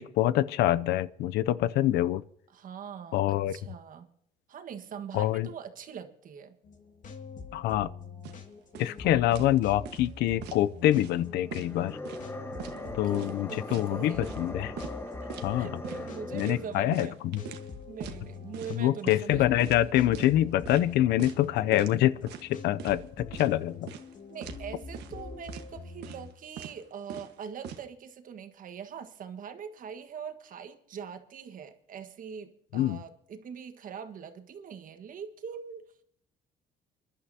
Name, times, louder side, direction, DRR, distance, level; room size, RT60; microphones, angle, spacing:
voice 1, 0.0-2.2 3.1-3.6 5.1-5.5 7.5-7.9 8.8-12.0 12.9-14.7 15.4-15.8 16.3-17.4 18.7-23.9 32.7-33.0, left 13 dB, 80° left, 0.6 m, -26 dB
voice 2, 2.5-4.1 4.5-6.6 12.7-14.3 15.1-17.2 17.9-19.8 24.3-35.8, right 7 dB, 55° right, 1.6 m, -43 dB
sound 1, 6.6-26.3, left 4 dB, 50° left, 2.2 m, -45 dB
sound 2, 8.2-8.4 8.7-9.0 9.3-9.6 9.8-10.6 11.0-11.2 11.5-12.3 12.6-12.8 13.1-14.5 14.8-14.9 15.3-15.5 15.8-16.0 16.4-17.7 18.0-18.2 18.5-18.8 19.1-19.3 19.6-20.3 20.6-20.9 21.2-21.4 21.7-22.0 22.3-23.0 23.3-23.5 23.9-24.1 24.4-24.6 24.9-25.2 25.5-25.7 26.0-26.3 26.6-26.8 27.1-27.8, right 9 dB, 80° right, 1.5 m, -42 dB
sound 3, 11.5-16.8, left 1 dB, 15° left, 1.3 m, -40 dB
29.0 x 11.5 x 2.8 m
cardioid pair, 110°, 17 cm